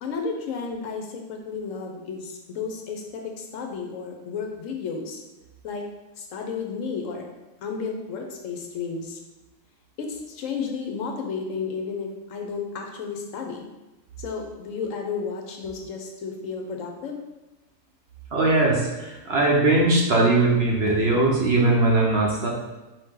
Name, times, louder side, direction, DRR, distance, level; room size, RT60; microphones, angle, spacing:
voice 1, 0.0-5.2 5.6-5.8 6.2-7.3 7.6-9.2 10.0-13.6 14.2-17.2, left 5 dB, 70° left, 2 dB, 0.9 m, -32 dB
voice 2, 18.3-22.5, right 2 dB, 55° right, -3 dB, 0.9 m, -20 dB
4.7 x 2.7 x 3.7 m, 1.1 s
omnidirectional pair, 1.5 m